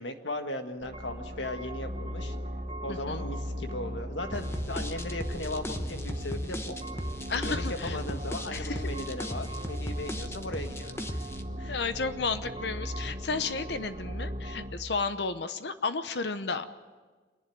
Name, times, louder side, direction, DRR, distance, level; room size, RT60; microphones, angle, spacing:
voice 1, 0.0-2.3 2.8-6.8 7.3-11.2 11.6-11.7, left 1 dB, 90° left, 6 dB, 1.7 m, -37 dB
sound 1, 0.8-14.7, equal, 35° right, 1.8 m, -37 dB
voice 2, 2.9-3.2 7.3-8.0 8.5-8.8 11.7-16.7, left 4 dB, 70° left, 11 dB, 0.9 m, -32 dB
sound 2, 4.3-11.4, left 1 dB, 15° left, 1.0 m, -37 dB
26.5 x 11.0 x 9.1 m, 1.4 s
head